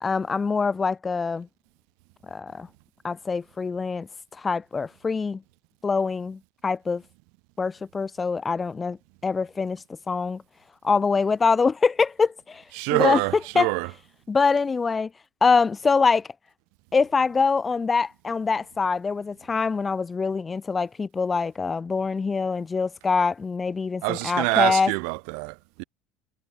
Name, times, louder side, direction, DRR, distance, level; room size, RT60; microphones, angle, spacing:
voice 1, 0.0-1.5 2.3-2.7 3.0-4.1 4.4-5.4 5.8-7.0 7.6-9.0 9.2-10.4 10.8-12.6 12.9-13.2 13.5-13.7 14.3-15.1 15.4-16.3 16.9-24.9, left 4 dB, 15° left, 1.1 m, -24 dB
voice 2, 12.8-13.9 24.0-25.8, right 40 dB or more, 75° right, 6.6 m, -25 dB
cardioid pair, 155°, 0 cm